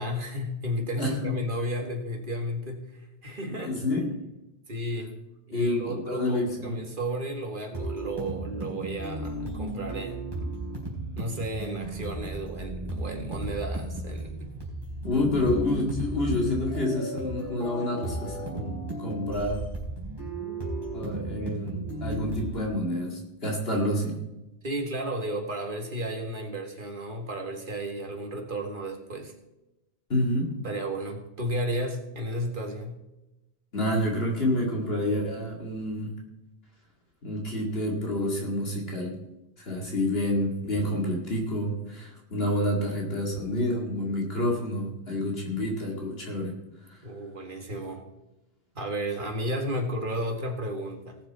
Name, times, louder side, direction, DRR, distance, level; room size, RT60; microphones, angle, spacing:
voice 1, 0.0-3.8 4.7-5.1 5.5-10.3 11.2-14.5 24.6-29.3 30.6-33.0 47.0-48.0 48.8-51.2, equal, 50° right, 3 dB, 2.1 m, -33 dB
voice 2, 1.0-1.3 3.5-4.1 5.5-6.8 15.0-19.7 20.9-24.2 30.1-30.5 33.7-36.1 37.2-39.1 39.6-46.6 46.9-47.0, left 1 dB, 60° left, -1 dB, 2.5 m, -28 dB
sound 1, 7.7-22.7, right 1 dB, 20° right, 3.8 m, -34 dB
18.5 x 7.2 x 4.2 m, 0.97 s
omnidirectional pair, 1.1 m